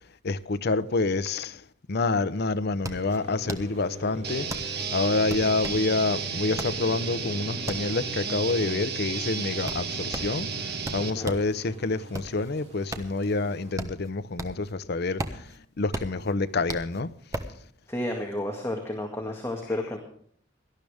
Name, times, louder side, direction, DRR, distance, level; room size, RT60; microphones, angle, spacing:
voice 1, 0.2-17.1, left 3 dB, 60° left, 0.7 m, -28 dB
sound 1, 1.9-2.0 2.2-11.5 11.9-14.8 15.0-17.6, right 1 dB, 15° right, 1.2 m, -37 dB
sound 2, 2.9-13.7, equal, 35° right, 3.2 m, -43 dB
sound 3, 4.2-11.1, right 6 dB, 55° right, 1.6 m, -33 dB
voice 2, 11.0-11.3 17.9-20.0, left 1 dB, 15° left, 1.9 m, -31 dB
18.0 x 12.0 x 3.5 m
head